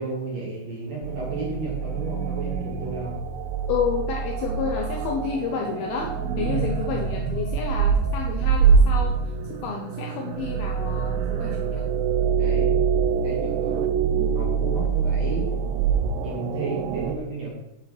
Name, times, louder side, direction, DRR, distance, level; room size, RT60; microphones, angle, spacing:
voice 1, 0.0-3.2 6.5-6.6 12.4-12.8 13.2-13.9 14.3-15.5 16.2-17.5, right 3 dB, 45° right, -4 dB, 2.4 m, -32 dB
sound 1, 1.0-17.2, right 6 dB, 80° right, 2.6 m, -24 dB
voice 2, 3.7-9.2 9.5-11.8, left 6 dB, 75° left, 1 dB, 2.3 m, -30 dB
8.6 x 8.4 x 4.9 m, 0.84 s
omnidirectional pair, 5.3 m